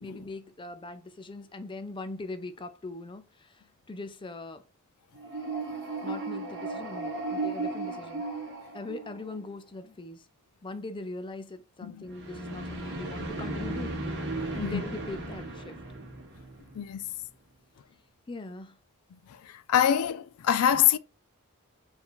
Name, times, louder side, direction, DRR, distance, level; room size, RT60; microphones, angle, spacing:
voice 1, 0.0-4.6 5.6-5.7 6.0-8.2 8.7-10.3 10.6-14.0 14.5-15.8 18.3-18.8, left 2 dB, 25° left, 0.5 m, -41 dB
sound 1, 5.1-9.5 12.1-17.1, right 2 dB, 55° right, 1.4 m, -35 dB
voice 2, 19.7-21.0, left 9 dB, 85° left, 0.4 m, -24 dB
4.6 x 2.7 x 3.7 m
head